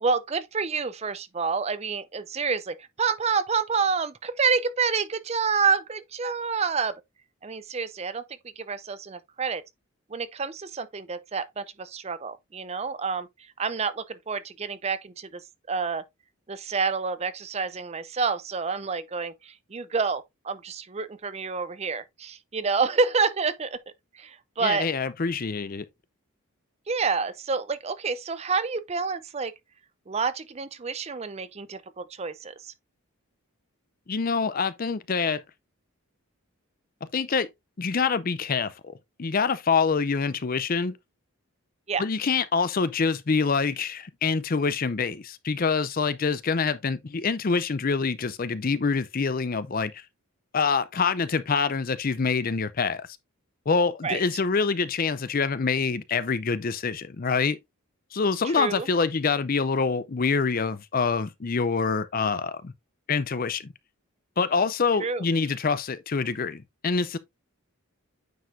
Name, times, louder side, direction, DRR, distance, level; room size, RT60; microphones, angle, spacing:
voice 1, 0.0-6.9 7.4-8.2 8.6-9.6 10.1-13.3 13.6-15.4 15.7-16.0 16.5-23.8 24.1-24.9 26.9-29.5 30.1-32.7 41.9-42.0 54.0-54.2 58.4-58.9 65.0-65.2, right 5 dB, 30° right, 0.5 m, -28 dB
voice 2, 24.6-25.9 34.1-35.4 37.1-37.5 37.8-38.9 39.2-41.0 42.0-50.0 50.5-53.1 53.7-57.6 58.1-62.7 63.1-63.7 64.4-67.2, left 5 dB, 40° left, 0.5 m, -26 dB
9.2 x 4.8 x 2.6 m
head